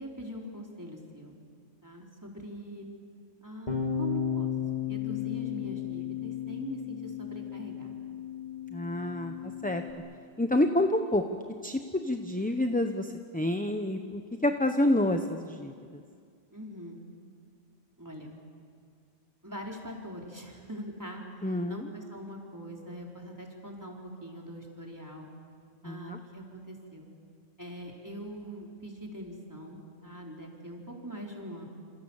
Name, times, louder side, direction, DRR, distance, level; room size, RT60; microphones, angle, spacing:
voice 1, 0.0-1.4 1.8-2.9 3.4-4.5 4.9-7.9 16.5-17.0 18.0-18.3 19.4-21.2 21.7-25.3 25.8-27.1 27.6-31.7, equal, 15° right, -1 dB, 4.2 m, -42 dB
Bass guitar, 3.7-9.9, left 8 dB, 35° left, 2.5 m, -34 dB
voice 2, 8.7-9.3 9.6-9.8 10.4-11.2 11.6-16.0 21.4-21.9 25.8-26.2, left 1 dB, 10° left, 6 dB, 0.9 m, -28 dB
28.5 x 28.0 x 7.3 m, 2.2 s
omnidirectional pair, 1.2 m